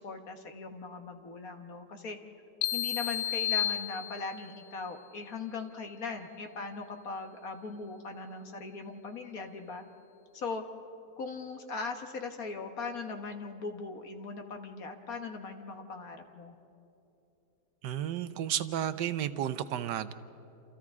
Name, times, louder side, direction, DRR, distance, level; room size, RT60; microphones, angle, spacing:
voice 1, 0.0-2.2 2.7-9.8 10.3-10.6 11.2-16.5, left 4 dB, 55° left, 5 dB, 1.7 m, -39 dB
sound 1, 2.6-4.6, left 11 dB, 75° left, 1.1 m, -32 dB
voice 2, 17.8-20.1, right 10 dB, 80° right, 13 dB, 1.3 m, -32 dB
28.0 x 28.0 x 3.7 m, 2.8 s
omnidirectional pair, 1.9 m